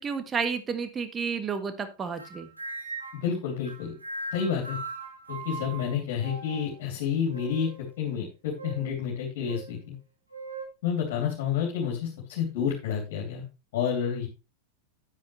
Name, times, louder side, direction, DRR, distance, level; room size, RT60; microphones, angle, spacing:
voice 1, 0.0-2.5, right 5 dB, 20° right, 9 dB, 1.4 m, -31 dB
sound 1, 2.2-3.3 3.6-6.8 7.3-7.9 8.6-8.9 9.5-9.7 10.3-10.6, right 3 dB, 85° right, 2.6 m, -39 dB
voice 2, 3.1-4.0 4.3-4.8 5.3-7.7 8.0-9.9 10.8-13.4 13.7-14.3, left 7 dB, 50° left, -1 dB, 3.2 m, -29 dB
9.7 x 9.5 x 3.3 m, 0.30 s
figure-of-eight pair, 90°, 0 cm